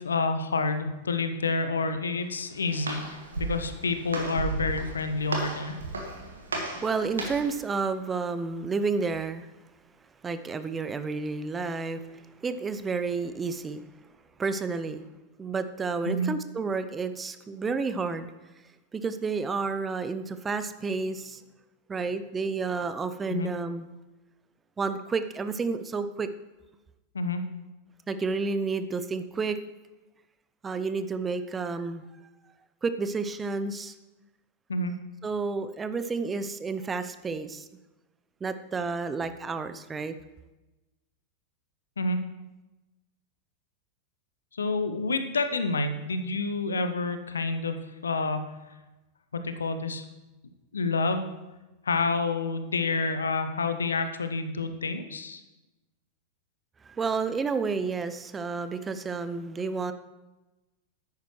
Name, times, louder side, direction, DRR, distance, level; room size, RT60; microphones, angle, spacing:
voice 1, 0.0-5.8 16.1-16.3 23.3-23.5 27.1-27.4 34.7-34.9 42.0-42.2 44.5-48.5 49.3-50.0 50.7-51.3 51.8-55.4, left 3 dB, 70° left, 9 dB, 0.7 m, -28 dB
Walk footsteps, 2.2-7.6, right 3 dB, 70° right, 1.4 m, -35 dB
voice 2, 6.7-9.5 10.2-13.8 14.4-15.0 15.4-18.3 18.9-21.4 21.9-23.9 24.8-26.3 28.1-29.6 30.6-32.0 32.8-33.9 35.2-37.7 38.4-40.2 56.8-59.9, right 4 dB, 15° right, 11 dB, 0.5 m, -30 dB
10.5 x 9.2 x 3.1 m, 1.1 s
figure-of-eight pair, 90°, 0 cm